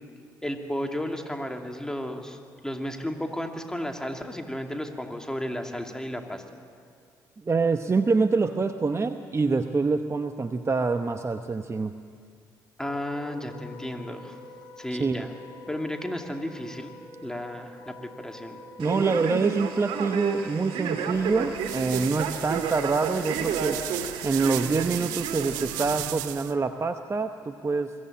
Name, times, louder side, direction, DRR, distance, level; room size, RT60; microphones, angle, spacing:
voice 1, 0.4-6.4 12.8-14.4 14.8-15.3 15.7-16.9 17.2-18.6, left 1 dB, 5° left, 4 dB, 2.5 m, -33 dB
voice 2, 7.4-12.0 14.9-15.2 18.8-23.8 24.2-27.9, right 4 dB, 30° right, 8 dB, 0.9 m, -26 dB
Wind instrument woodwind instrument, 12.8-21.8, left 2 dB, 60° left, 2.5 m, -47 dB
Male speech man speaking, 18.8-26.1, right 6 dB, 65° right, 1.9 m, -32 dB
sound 1, 21.1-26.5, right 16 dB, 80° right, 0.6 m, -36 dB
22.5 x 15.0 x 8.7 m, 2.2 s
hypercardioid pair, 50°, 10 cm